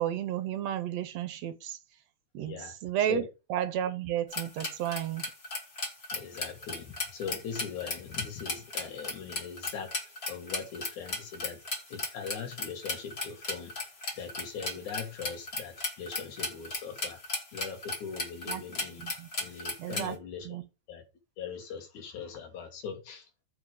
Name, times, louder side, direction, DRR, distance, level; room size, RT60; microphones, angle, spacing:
voice 1, 0.0-1.8 2.3-2.6 2.8-5.3 18.5-18.6 19.0-19.3 19.8-20.2 20.5-20.6, right 11 dB, 75° right, 1.9 m, -32 dB
voice 2, 2.4-2.7 3.1-3.3 6.1-9.9 10.3-11.6 11.9-13.7 14.2-17.2 17.5-19.1 19.4-20.6 20.9-21.0 21.4-23.3, left 6 dB, 90° left, 3.1 m, -40 dB
sound 1, 4.3-20.1, left 2 dB, 30° left, 1.1 m, -36 dB
7.5 x 4.8 x 4.9 m
omnidirectional pair, 3.3 m